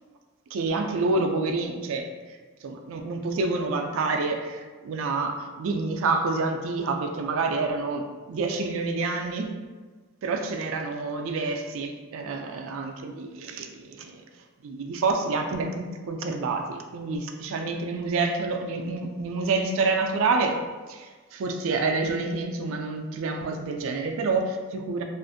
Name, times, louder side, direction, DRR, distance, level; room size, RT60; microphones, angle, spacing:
voice 1, 0.5-9.5 10.2-14.2 14.6-20.6 20.9-25.0, right 3 dB, 60° right, 4 dB, 0.3 m, -28 dB
2.5 x 2.4 x 2.5 m, 1.4 s
head